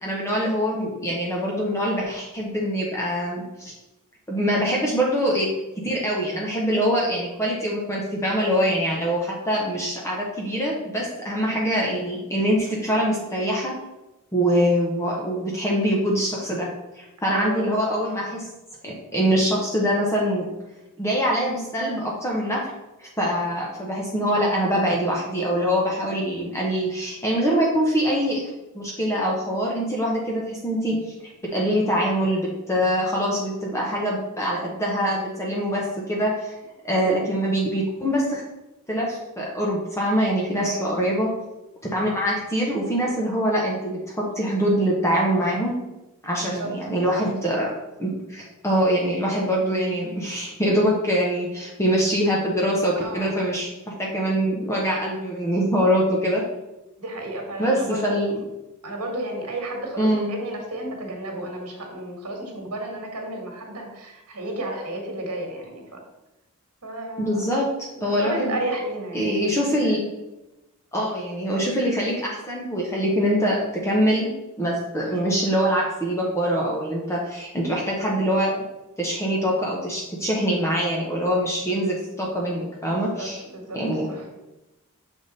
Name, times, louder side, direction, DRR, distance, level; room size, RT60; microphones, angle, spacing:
voice 1, 0.0-3.7 4.3-5.5 5.8-13.7 14.3-16.7 17.0-18.5 18.8-20.4 21.0-22.7 23.0-28.4 28.7-36.5 36.8-38.4 38.9-41.3 41.9-45.7 46.2-47.7 48.0-56.4 57.6-58.4 60.0-60.3 67.2-67.7 68.0-68.6 69.1-70.0 70.9-74.3 74.6-78.5 79.0-83.4 83.7-84.1, equal, 15° left, -3 dB, 0.8 m, -24 dB
voice 2, 17.3-17.7 36.9-37.1 40.5-41.0 46.3-46.7 47.1-47.2 52.9-53.4 57.0-58.4 58.8-66.0 66.8-67.4 67.9-69.4 82.9-83.8 84.1-84.2, right 1 dB, 85° right, 2 dB, 1.4 m, -32 dB
6.6 x 3.5 x 4.0 m, 0.99 s
head